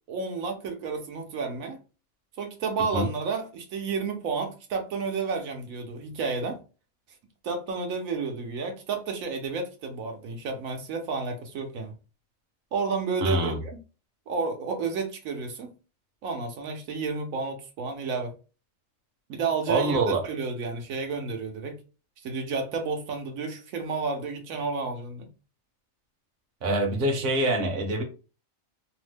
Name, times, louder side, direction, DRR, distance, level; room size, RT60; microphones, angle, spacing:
voice 1, 0.1-1.8 2.4-6.6 7.4-11.9 12.7-13.8 14.3-15.7 16.2-18.3 19.3-20.0 20.2-21.8 22.2-25.3, right 4 dB, 75° right, 1.1 m, -31 dB
voice 2, 13.2-13.6 19.7-20.2 26.6-28.0, right 2 dB, 50° right, 0.9 m, -25 dB
3.0 x 2.1 x 3.2 m
omnidirectional pair, 1.4 m